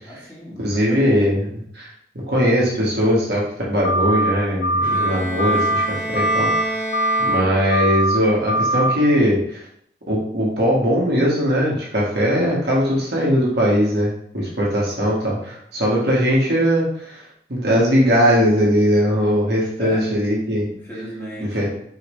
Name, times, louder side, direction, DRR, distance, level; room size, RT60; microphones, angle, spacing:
voice 1, 0.1-1.2 19.8-20.0 20.7-21.7, equal, 10° left, -8 dB, 1.6 m, -35 dB
voice 2, 0.6-1.5 1.7-1.9 2.1-6.8 7.2-9.6 10.1-17.2 17.5-20.7 21.4-21.7, equal, 65° right, -5 dB, 1.4 m, -20 dB
sound 1, 3.8-4.3 4.6-5.1 5.4-5.9 6.1-6.6 6.9-7.4 7.7-8.2 8.5-9.0, right 1 dB, 50° left, 0.4 m, -21 dB
Bowed string instrument, 4.8-8.0, equal, 25° right, 1.5 m, -28 dB
4.7 x 3.3 x 3.1 m, 0.69 s
head